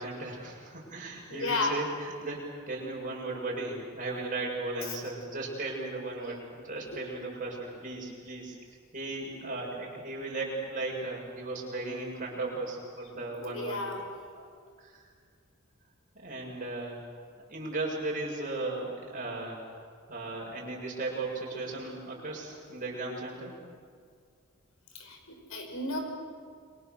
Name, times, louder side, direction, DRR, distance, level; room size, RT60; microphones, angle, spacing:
voice 1, 0.0-8.6 8.9-13.9 14.3-14.5 14.8-15.0 16.1-17.0 17.5-19.6 20.1-23.6, right 2 dB, 40° right, -2 dB, 7.2 m, -36 dB
voice 2, 1.3-1.8 4.9-5.0 6.9-7.0 13.4-14.1 24.9-26.0, left 3 dB, 75° left, 4 dB, 5.4 m, -33 dB
29.0 x 24.0 x 7.1 m, 2.1 s
head